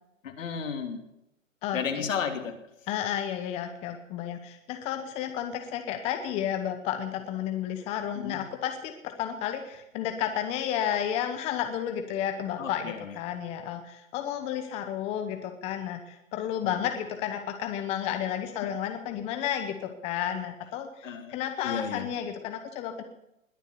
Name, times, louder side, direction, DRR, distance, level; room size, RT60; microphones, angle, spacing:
voice 1, 0.2-1.0 1.7-2.6 8.2-8.4 12.6-13.1 21.0-21.3 21.6-22.1, left 6 dB, 70° left, 6 dB, 3.1 m, -33 dB
voice 2, 1.6-2.0 2.9-23.0, left 10 dB, 15° left, 6 dB, 0.9 m, -32 dB
20.5 x 7.2 x 9.7 m, 0.84 s
hypercardioid pair, 155°, 41 cm